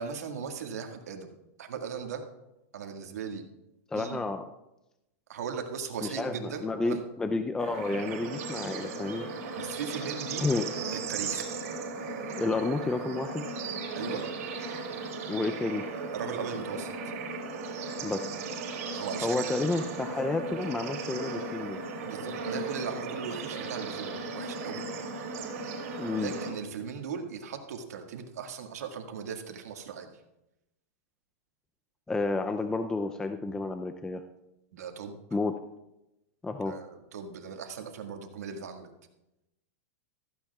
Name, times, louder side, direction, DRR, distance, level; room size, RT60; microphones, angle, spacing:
voice 1, 0.0-1.3 1.6-2.2 2.7-3.4 3.9-4.2 5.3-7.1 9.5-10.4 10.9-11.5 13.9-14.2 16.1-17.1 18.9-19.6 22.0-24.8 26.2-30.1 34.7-35.1 36.5-38.9, right 6 dB, 90° right, 4 dB, 1.9 m, -38 dB
voice 2, 3.9-4.4 6.0-9.3 10.4-10.7 12.4-13.4 15.3-15.9 18.0-18.3 19.2-21.8 26.0-26.3 32.1-34.2 35.3-35.6 36.4-36.8, left 3 dB, 10° left, 7 dB, 0.5 m, -30 dB
Bird / Insect / Frog, 7.6-26.5, right 3 dB, 70° right, 4.0 m, -36 dB
15.5 x 14.5 x 2.4 m, 0.92 s
supercardioid pair, 140°, 8 cm